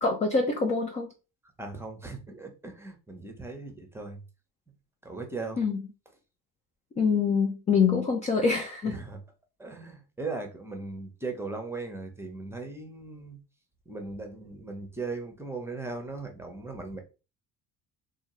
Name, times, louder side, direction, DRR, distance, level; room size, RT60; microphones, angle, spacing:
voice 1, 0.0-1.1 5.6-5.8 7.0-9.0, left 5 dB, 15° left, 0.3 m, -25 dB
voice 2, 1.6-4.2 5.0-5.6 8.9-9.2 9.6-13.4 13.9-17.0, right 3 dB, 5° right, 0.8 m, -38 dB
3.5 x 2.2 x 3.0 m
figure-of-eight pair, 50°, 49 cm